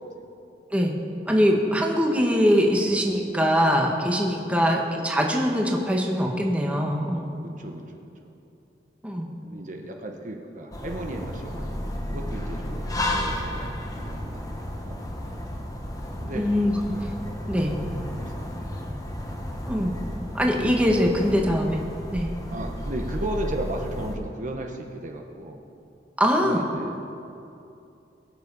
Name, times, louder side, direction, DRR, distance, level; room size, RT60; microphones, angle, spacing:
voice 1, 1.3-7.4 9.0-9.3 16.3-16.7 17.5-17.8 19.7-19.9 20.3-21.8 22.1-22.3 26.2-26.6, equal, 10° right, 0 dB, 1.4 m, -22 dB
voice 2, 7.4-8.3 9.4-15.5 16.2-16.5 17.8-18.6 22.5-25.6 26.4-27.0, right 1 dB, 45° right, 2 dB, 1.1 m, -36 dB
sound 1, 10.7-24.2, left 1 dB, 20° left, 1.4 m, -33 dB
22.0 x 7.6 x 5.5 m, 2.7 s
head